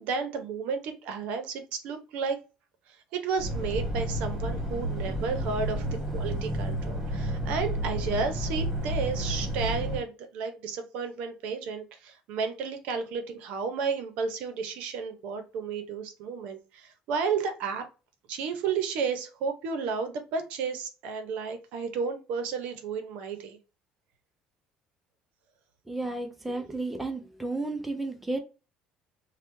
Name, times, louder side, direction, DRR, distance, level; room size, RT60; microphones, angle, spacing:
voice 1, 0.0-2.4 2.9-5.8 6.1-17.8 18.3-23.6, right 5 dB, 65° right, 0.7 m, -32 dB
sound 1, 3.4-10.0, equal, 35° right, 1.3 m, -31 dB
voice 2, 25.9-28.4, right 2 dB, 5° right, 0.5 m, -32 dB
3.3 x 2.2 x 3.0 m
cardioid pair, 160°, 2 cm